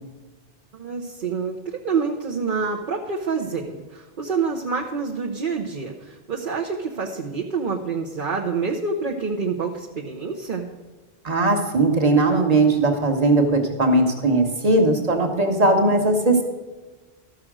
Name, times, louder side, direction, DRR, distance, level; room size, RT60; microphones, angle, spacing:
voice 1, 0.7-10.7, right 5 dB, 55° right, -1 dB, 1.0 m, -27 dB
voice 2, 11.2-16.4, right 2 dB, 40° right, 3 dB, 1.4 m, -19 dB
13.5 x 6.4 x 6.1 m, 1.2 s
omnidirectional pair, 1.0 m